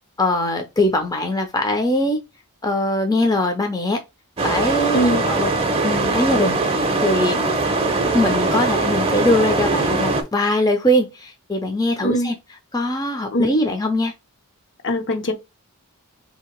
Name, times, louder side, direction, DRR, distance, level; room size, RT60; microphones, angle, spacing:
voice 1, 0.2-2.2 2.6-4.0 4.4-5.0 5.2-5.5 5.8-7.4 8.1-12.4 12.7-14.1, left 1 dB, 15° left, 0.6 m, -21 dB
sound 1, 4.4-10.2, right 3 dB, 25° right, 0.6 m, -21 dB
voice 2, 4.9-5.4 12.0-12.3 13.3-13.5 14.8-15.3, equal, 55° left, 0.8 m, -21 dB
3.3 x 2.8 x 4.4 m
head